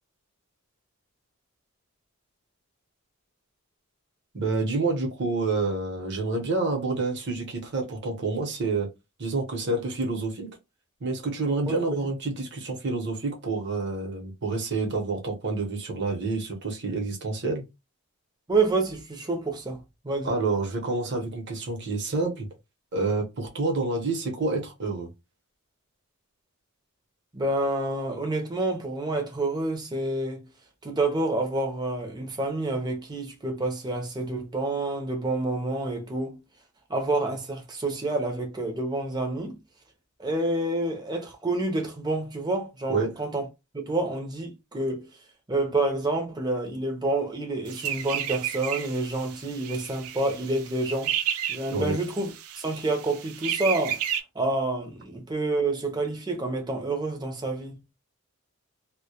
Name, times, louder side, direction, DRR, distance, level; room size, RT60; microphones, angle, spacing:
voice 1, 4.3-8.9 9.2-10.5 11.0-17.6 20.2-22.5 22.9-25.1 42.9-43.1 51.7-52.0, right 3 dB, 50° right, 0.8 m, -28 dB
voice 2, 11.7-12.0 18.5-20.3 27.3-30.5 30.8-36.4 36.9-39.6 40.2-43.5 43.7-45.1 45.5-51.2 51.5-52.3 52.6-54.0 54.3-57.8, right 2 dB, 20° right, 0.5 m, -28 dB
sound 1, 47.7-54.2, right 10 dB, 80° right, 0.4 m, -32 dB
2.2 x 2.1 x 2.8 m
head